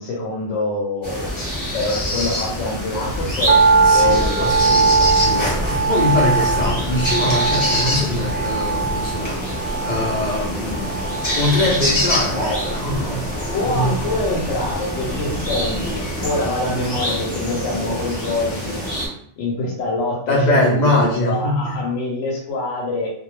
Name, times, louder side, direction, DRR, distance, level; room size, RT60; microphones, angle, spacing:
voice 1, 0.0-4.8 12.4-12.8 13.5-18.8 19.4-23.1, left 2 dB, 85° left, -2 dB, 0.9 m, -25 dB
sound 1, 1.0-19.1, equal, 20° left, 0.8 m, -25 dB
sound 2, 3.5-15.8 16.0-16.1, right 4 dB, 65° right, 0.4 m, -21 dB
voice 2, 3.8-9.4 9.8-10.9 11.3-12.4 12.7-13.3 13.6-13.9 20.3-21.8, left 1 dB, 55° left, -3 dB, 0.5 m, -22 dB
2.3 x 2.1 x 2.9 m, 0.64 s
omnidirectional pair, 1.2 m